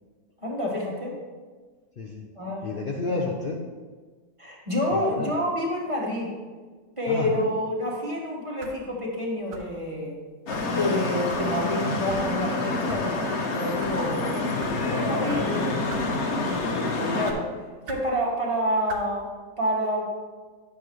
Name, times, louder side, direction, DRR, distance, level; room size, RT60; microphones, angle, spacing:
voice 1, 0.4-1.2 2.4-2.7 3.1-3.3 4.4-6.3 7.0-10.2 10.6-14.2 14.8-15.6 17.1-17.6 17.9-20.1, left 1 dB, 20° right, -3 dB, 1.3 m, -28 dB
voice 2, 2.0-2.3 2.6-3.6 4.9-5.4 7.1-7.5 12.9-13.2 14.1-16.2, left 3 dB, 80° left, 0 dB, 0.4 m, -32 dB
sound 1, 8.6-8.8 9.5-9.8 10.5-10.7 11.3-11.5 12.1-12.3 12.9-13.0 13.6-13.9 14.6-14.8 15.3-15.4 15.9-16.1 16.5-16.8 17.3-17.4 17.9-18.1 18.9-19.1, right 3 dB, 70° right, 1.3 m, -40 dB
sound 2, 10.5-17.3, left 2 dB, 50° left, 1.0 m, -27 dB
9.8 x 7.1 x 3.1 m, 1.4 s
omnidirectional pair, 1.9 m